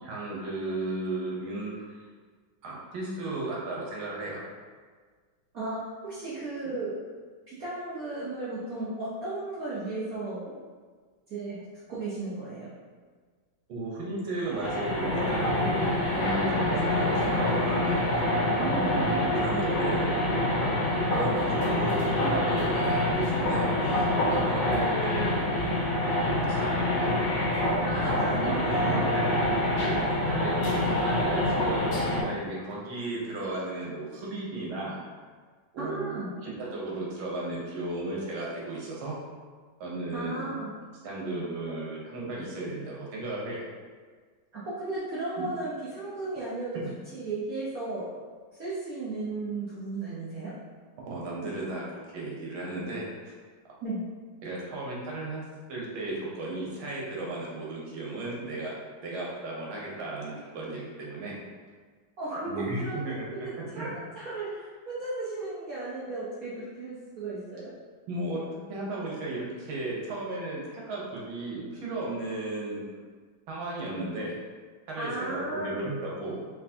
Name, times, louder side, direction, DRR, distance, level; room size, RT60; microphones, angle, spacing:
voice 1, 0.0-2.0 2.6-4.4 6.6-6.8 13.7-18.2 18.6-20.1 21.1-25.4 26.4-27.2 28.4-29.2 29.8-29.9 30.3-35.0 35.7-39.2 39.8-40.5 41.0-43.6 45.4-45.5 46.7-46.9 51.1-53.3 54.4-55.4 55.7-58.8 59.0-61.3 62.5-63.2 63.6-63.9 68.1-68.4 68.7-72.8 73.5-74.3 74.9-76.4, right 2 dB, 85° right, -4 dB, 1.8 m, -35 dB
voice 2, 5.5-6.9 7.5-10.5 11.3-11.6 11.9-12.7 18.6-19.1 27.8-29.1 35.8-36.3 40.1-40.7 44.7-46.8 47.1-48.1 48.6-50.5 53.8-54.0 62.2-63.0 63.3-67.7 75.0-75.8, right 2 dB, 55° right, -10 dB, 1.1 m, -35 dB
sound 1, 14.5-32.2, left 1 dB, 65° left, 1.5 m, -26 dB
4.5 x 3.7 x 2.8 m, 1.5 s
omnidirectional pair, 2.2 m